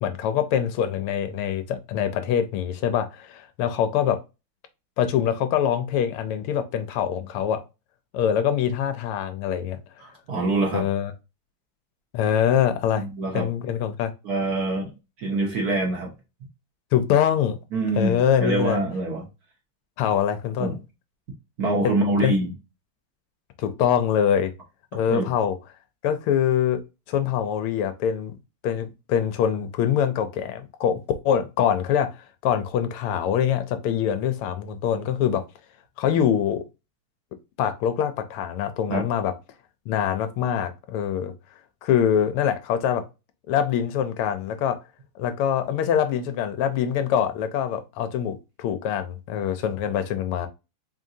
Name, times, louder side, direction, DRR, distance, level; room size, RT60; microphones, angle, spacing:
voice 1, 0.0-4.2 5.0-7.6 8.1-9.8 10.7-11.1 12.1-13.1 13.3-14.1 16.9-17.6 18.0-18.8 20.0-20.7 21.8-21.9 22.2-22.3 23.6-24.5 24.9-25.6 26.0-26.8 27.1-28.3 28.6-31.0 31.2-32.1 32.4-35.4 36.0-36.6 37.6-39.3 39.9-41.3 41.8-43.0 43.5-44.8 45.2-50.5, left 9 dB, 80° left, 1.5 m, -24 dB
voice 2, 10.0-10.8 13.0-13.5 14.2-14.9 15.2-16.1 17.7-19.2 20.6-20.8 21.6-22.5 25.1-25.3 38.9-39.0, right 2 dB, 50° right, 1.3 m, -25 dB
3.8 x 3.7 x 2.6 m
omnidirectional pair, 2.4 m